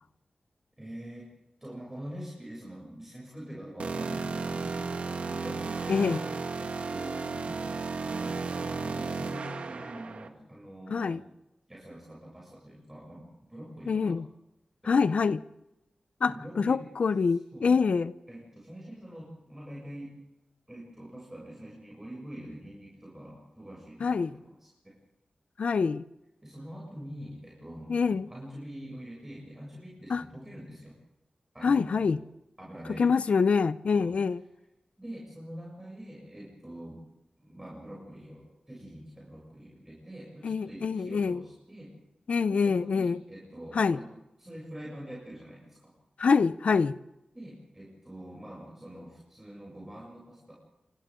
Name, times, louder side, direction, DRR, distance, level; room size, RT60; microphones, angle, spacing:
voice 1, 0.8-1.3 1.6-11.3 11.7-14.2 14.8-15.1 16.2-16.8 17.3-17.8 18.3-20.1 20.7-24.7 26.4-31.0 31.5-32.2 32.6-33.1 33.9-34.1 35.0-37.0 37.4-41.9 42.5-45.9 47.3-50.5, equal, 15° right, 7.5 m, -45 dB
sound 1, 3.8-10.3, right 4 dB, 80° right, 1.7 m, -34 dB
voice 2, 5.9-6.2 10.9-11.2 13.9-14.2 14.9-15.4 16.2-18.1 24.0-24.3 25.6-26.0 27.9-28.3 30.1-30.2 31.6-32.2 33.0-34.4 40.4-41.4 42.3-43.2 43.7-44.0 46.2-47.0, left 5 dB, 75° left, 0.7 m, -25 dB
29.5 x 25.5 x 3.8 m
wide cardioid pair, 120°, 2 cm